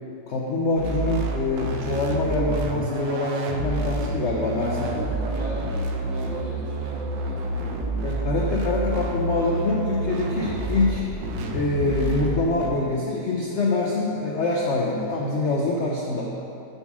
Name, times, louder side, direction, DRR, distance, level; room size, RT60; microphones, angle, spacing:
voice 1, 0.3-4.9 8.0-11.0 11.5-16.3, left 2 dB, 75° left, -2 dB, 0.6 m, -25 dB
sound 1, 0.8-12.7, right 2 dB, 90° right, 1.4 m, -29 dB
voice 2, 4.7-8.1 9.3-9.6, right 2 dB, 65° right, -4 dB, 1.9 m, -37 dB
7.2 x 4.1 x 6.0 m, 2.7 s
omnidirectional pair, 2.0 m